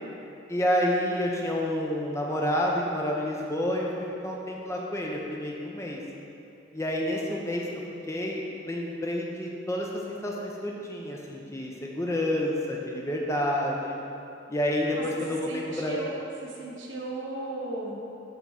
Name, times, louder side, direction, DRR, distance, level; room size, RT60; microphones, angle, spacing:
voice 1, 0.5-6.0 6.7-7.7 8.1-14.0 14.5-16.0, left 1 dB, 15° left, -2 dB, 0.5 m, -29 dB
voice 2, 15.5-16.2 16.4-17.9, right 2 dB, 80° right, -2 dB, 1.0 m, -36 dB
6.0 x 3.5 x 5.6 m, 2.7 s
head